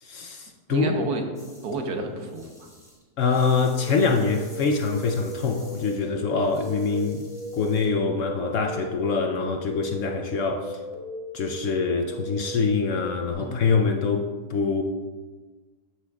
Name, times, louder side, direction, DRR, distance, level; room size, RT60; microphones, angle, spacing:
voice 1, 0.0-1.1 3.2-7.2 7.5-10.8 11.3-14.8, left 4 dB, 65° left, 4 dB, 0.8 m, -24 dB
voice 2, 0.7-1.2 1.6-2.7 13.4-13.8, right 2 dB, 75° right, 4 dB, 1.5 m, -31 dB
sound 1, 1.3-1.8 2.2-8.0, equal, ahead, 2.5 m, -51 dB
sound 2, 3.8-13.3, left 1 dB, 25° right, 1.0 m, -37 dB
14.0 x 6.1 x 2.3 m, 1.4 s
omnidirectional pair, 1.7 m